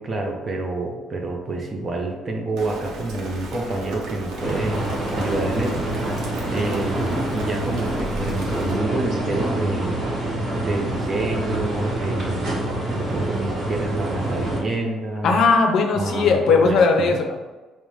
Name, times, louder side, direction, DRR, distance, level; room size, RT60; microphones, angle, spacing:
voice 1, 0.0-5.9 6.5-10.0 10.3-15.4 15.9-17.1, right 2 dB, 30° right, 2 dB, 0.6 m, -28 dB
Rain, 2.6-8.8, right 1 dB, 75° right, 0.7 m, -34 dB
sound 1, 4.4-14.6, right 1 dB, 55° right, 1.0 m, -26 dB
voice 2, 15.2-17.4, left 4 dB, 60° left, 4 dB, 0.5 m, -18 dB
5.2 x 2.1 x 3.1 m, 1.2 s
cardioid pair, 140°, 0 cm